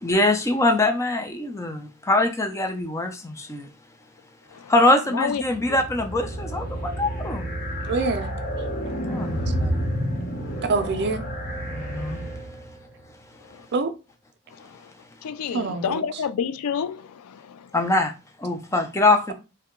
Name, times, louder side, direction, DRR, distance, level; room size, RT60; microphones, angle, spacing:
voice 1, 0.0-3.7 4.7-7.5 9.1-9.8 11.6-12.2 17.7-18.1 18.4-19.3, left 2 dB, 15° left, 0.4 m, -23 dB
sound 1, 5.4-12.8, equal, 40° left, 0.9 m, -30 dB
voice 2, 7.9-8.3 9.5-9.6 10.7-11.2 13.7-13.9 15.5-16.2, right 3 dB, 50° right, 0.4 m, -25 dB
voice 3, 8.9-9.6 11.9-12.2 13.5-13.6 14.6-14.9 15.2-17.7, left 7 dB, 85° left, 0.4 m, -30 dB
2.7 x 2.2 x 3.7 m
head